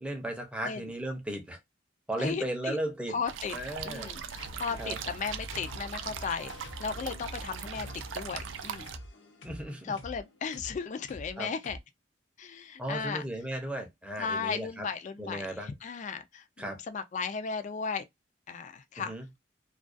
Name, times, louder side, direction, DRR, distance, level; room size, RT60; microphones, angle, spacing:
voice 1, 0.0-1.6 2.1-3.2 3.5-4.1 4.8-5.0 9.4-9.9 11.4-11.5 12.8-14.9 15.2-15.7 16.6-16.8 19.0-19.3, right 1 dB, 5° right, 0.6 m, -35 dB
voice 2, 2.2-2.8 3.1-3.5 3.8-6.5 6.8-7.9 8.1-8.9 9.8-11.8 12.4-13.2 14.2-18.1 18.5-19.1, left 5 dB, 40° left, 0.3 m, -35 dB
sound 1, 3.3-9.0, right 7 dB, 75° right, 0.4 m, -40 dB
sound 2, 4.4-11.8, equal, 70° left, 0.7 m, -45 dB
2.3 x 2.2 x 2.4 m
head